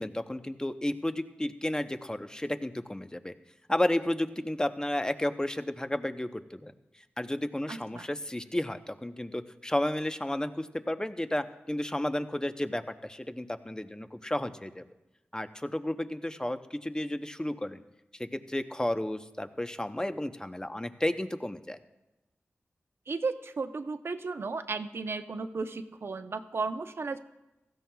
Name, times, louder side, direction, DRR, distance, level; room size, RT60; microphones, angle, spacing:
voice 1, 0.0-3.3 3.7-6.7 7.2-14.8 15.3-17.8 18.1-21.8, left 1 dB, 15° left, 9 dB, 0.8 m, -32 dB
voice 2, 7.7-8.1 23.1-27.2, right 4 dB, 65° right, 9 dB, 0.7 m, -34 dB
16.0 x 14.0 x 2.3 m, 1.0 s
cardioid pair, 40°, 4 cm